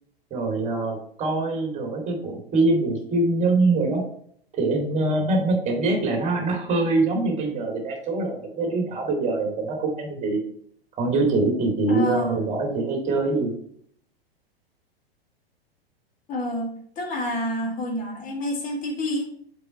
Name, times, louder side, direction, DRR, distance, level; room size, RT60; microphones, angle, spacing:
voice 1, 0.3-4.0 4.6-10.4 11.0-13.5, right 2 dB, 20° right, 2 dB, 2.4 m, -24 dB
voice 2, 11.9-12.3 16.3-19.2, left 1 dB, 25° left, 0 dB, 2.0 m, -28 dB
6.9 x 4.6 x 4.3 m, 0.65 s
figure-of-eight pair, 100°, 30 cm